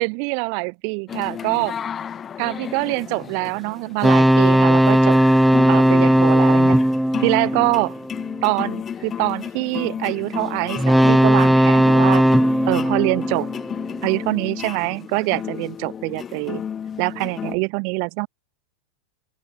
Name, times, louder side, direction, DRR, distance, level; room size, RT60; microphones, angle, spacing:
voice 1, 0.0-1.8 2.4-5.2 5.7-6.8 7.2-7.9 8.4-12.2 12.7-13.5 14.0-16.6 17.0-18.3, right 40 dB or more, 55° right, 1.3 m, -24 dB
sound 1, 1.1-17.6, left 8 dB, 25° left, 3.1 m, -33 dB
sound 2, 4.0-8.4 10.8-14.1, equal, ahead, 0.4 m, -17 dB
open air
hypercardioid pair, 125°, 0 cm